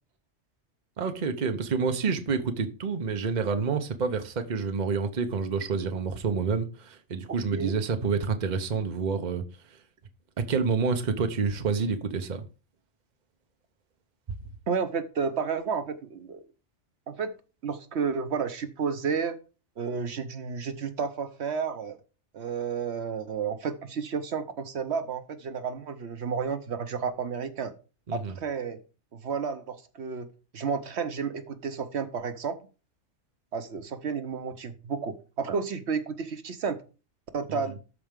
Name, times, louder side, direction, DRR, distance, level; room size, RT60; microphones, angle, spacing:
voice 1, 1.0-9.4 10.4-12.4 28.1-28.3 37.5-37.6, right 5 dB, 45° right, 0.9 m, -28 dB
voice 2, 14.7-16.4 17.1-17.3 17.6-19.4 19.8-22.0 22.3-27.7 28.1-28.8 29.1-30.3 30.5-32.6 33.5-36.8 37.3-37.8, right 5 dB, 70° right, 1.1 m, -31 dB
13.0 x 4.5 x 3.7 m
omnidirectional pair, 1.2 m